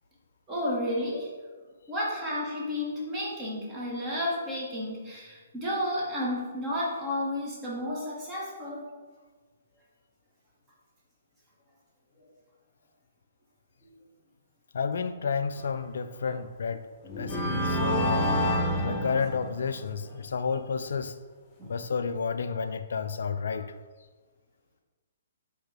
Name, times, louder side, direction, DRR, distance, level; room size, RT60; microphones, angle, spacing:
voice 1, 0.5-1.3 1.9-8.9 21.6-21.7, left 1 dB, 20° right, -5 dB, 1.6 m, -32 dB
voice 2, 14.7-16.9 17.2-18.5 18.8-21.1 21.7-23.7, left 5 dB, 60° left, 10 dB, 0.4 m, -31 dB
sound 1, 16.2-16.3 17.0-19.8, equal, 25° left, 1.0 m, -28 dB
7.8 x 3.9 x 3.7 m, 1.4 s
figure-of-eight pair, 125°, 0 cm